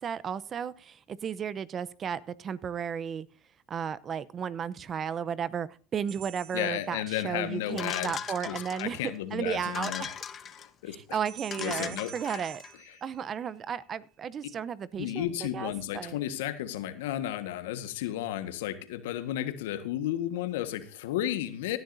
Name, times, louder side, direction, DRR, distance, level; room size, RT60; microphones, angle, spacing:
voice 1, 0.0-3.3 3.7-9.0 9.3-10.2 10.9-12.6 13.0-16.2, right 7 dB, 40° right, 0.8 m, -34 dB
sound 1, 6.1-7.6 11.3-13.8, right 11 dB, 60° right, 2.2 m, -48 dB
voice 2, 6.5-8.1 8.5-10.1 10.5-11.2 11.6-12.4 15.0-21.8, left 12 dB, 85° left, 1.5 m, -33 dB
sound 2, 7.8-9.1 9.6-10.7 11.2-11.3 11.5-12.7, left 7 dB, 35° left, 1.2 m, -39 dB
17.0 x 11.0 x 2.7 m
supercardioid pair, 95°, 0 cm